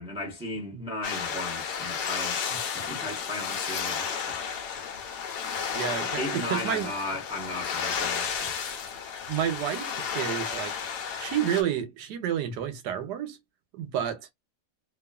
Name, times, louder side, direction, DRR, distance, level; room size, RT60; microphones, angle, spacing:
voice 1, 0.0-2.4 2.7-4.4 6.1-8.6, left 1 dB, 5° right, 0.7 m, -36 dB
sound 1, 1.0-11.6, left 7 dB, 85° left, 1.2 m, -32 dB
voice 2, 5.7-6.9 9.3-10.7 11.2-13.4 13.7-14.2, right 10 dB, 90° right, 1.3 m, -30 dB
2.9 x 2.3 x 2.3 m
omnidirectional pair, 1.7 m